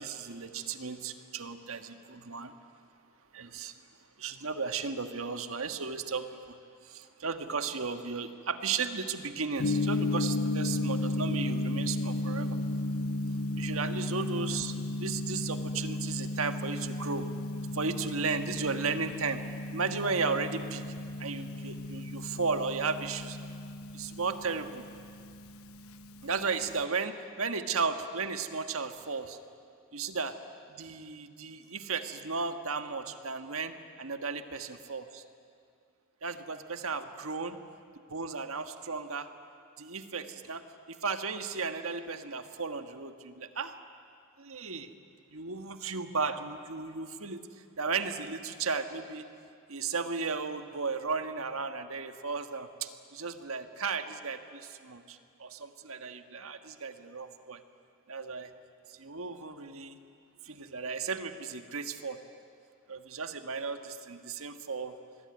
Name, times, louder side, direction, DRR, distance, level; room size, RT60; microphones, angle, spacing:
voice 1, 0.0-2.5 3.3-3.8 4.2-6.6 6.8-12.6 13.6-17.3 17.7-19.4 19.7-20.9 21.2-23.4 23.9-24.8 26.2-29.4 29.9-30.3 30.7-35.2 36.2-37.6 38.1-39.3 39.8-43.8 44.4-44.9 45.3-47.5 47.8-49.2 49.7-57.6 58.1-58.5 58.9-60.0 60.4-62.2 62.9-64.9, right 4 dB, 75° right, 8 dB, 1.5 m, -35 dB
Gong, 9.6-26.8, left 2 dB, 80° left, 0.9 m, -34 dB
26.0 x 21.0 x 9.7 m, 2.3 s
head